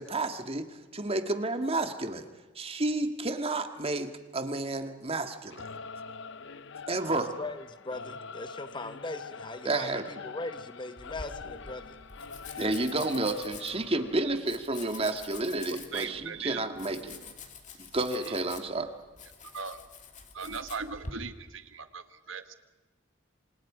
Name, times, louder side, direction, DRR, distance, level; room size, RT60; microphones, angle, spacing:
voice 1, 0.0-2.3 2.6-5.7 6.9-7.3 9.6-10.1 12.6-17.2 17.8-18.9, right 2 dB, 30° right, 7 dB, 1.8 m, -31 dB
Singing / Musical instrument, 5.5-14.4, left 5 dB, 65° left, 0.8 m, -44 dB
voice 2, 7.1-12.0, left 2 dB, 25° left, 10 dB, 1.1 m, -40 dB
Domestic sounds home sounds, 11.0-21.1, left 4 dB, 40° left, 2.4 m, -47 dB
voice 3, 15.9-17.3 17.7-18.4 19.5-19.8 20.3-22.5, right 5 dB, 80° right, 9 dB, 1.6 m, -39 dB
27.5 x 27.0 x 5.1 m, 1.2 s
head